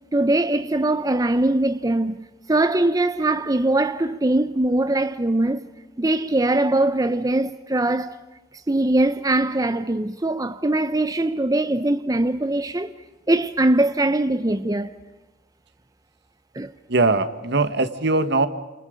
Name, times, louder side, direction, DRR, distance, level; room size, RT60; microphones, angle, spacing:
voice 1, 0.1-5.7 6.0-8.2 8.7-12.9 13.3-14.9 16.5-16.7, right 2 dB, 20° right, 0.7 m, -21 dB
voice 2, 16.9-18.5, right 3 dB, 65° right, 1.6 m, -20 dB
29.5 x 28.0 x 5.2 m
head